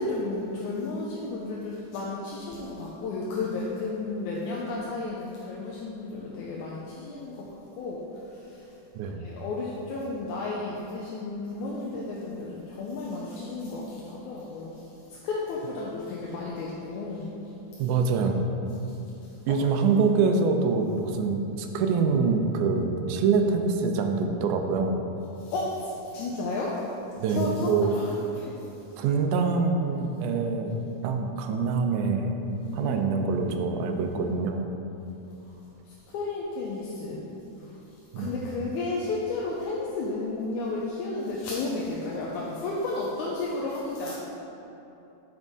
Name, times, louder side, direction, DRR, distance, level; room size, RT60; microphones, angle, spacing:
voice 1, 0.0-8.8 9.2-17.4 18.8-18.9 19.2-19.6 25.4-26.8 27.3-28.6 32.6-34.3 35.4-35.5 35.9-37.3 37.6-37.7 38.2-44.1, left 3 dB, 80° left, -4 dB, 2.0 m, -33 dB
voice 2, 9.0-9.3 17.8-18.4 19.5-25.0 27.2-27.9 29.0-32.3 32.7-34.7 38.1-38.3, right 4 dB, 85° right, 5 dB, 2.1 m, -25 dB
9.1 x 5.3 x 3.6 m, 2.9 s
omnidirectional pair, 3.5 m